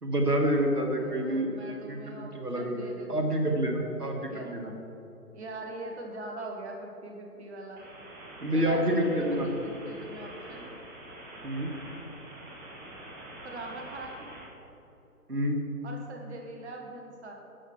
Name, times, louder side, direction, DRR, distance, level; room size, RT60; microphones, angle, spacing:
voice 1, 0.0-2.8 3.1-4.7 8.4-9.5 11.4-11.7 15.3-15.6, equal, 85° right, 2 dB, 2.0 m, -28 dB
voice 2, 1.0-3.1 4.3-4.8 5.3-7.8 8.5-10.8 13.4-14.3 15.8-17.3, right 2 dB, 45° right, 1 dB, 1.5 m, -42 dB
sound 1, 7.8-14.5, right 1 dB, 30° right, 1.9 m, -46 dB
12.5 x 7.9 x 4.6 m, 2.9 s
figure-of-eight pair, 140°, 45 cm